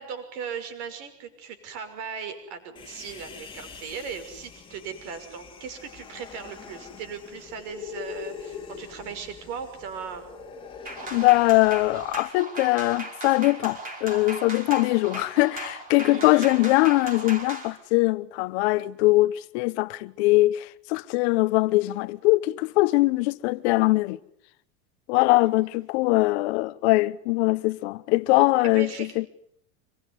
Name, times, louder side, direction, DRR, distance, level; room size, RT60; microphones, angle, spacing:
voice 1, 0.0-10.3 16.0-16.5 28.6-29.1, right 6 dB, 45° right, 6.1 m, -38 dB
Human voice, 2.8-12.2, left 7 dB, 10° left, 3.1 m, -43 dB
sound 1, 10.9-17.7, right 2 dB, 15° right, 5.2 m, -37 dB
voice 2, 11.1-24.2 25.1-28.9 29.2-29.3, left 20 dB, 40° left, 1.0 m, -22 dB
26.0 x 22.5 x 9.9 m
supercardioid pair, 175°, 49 cm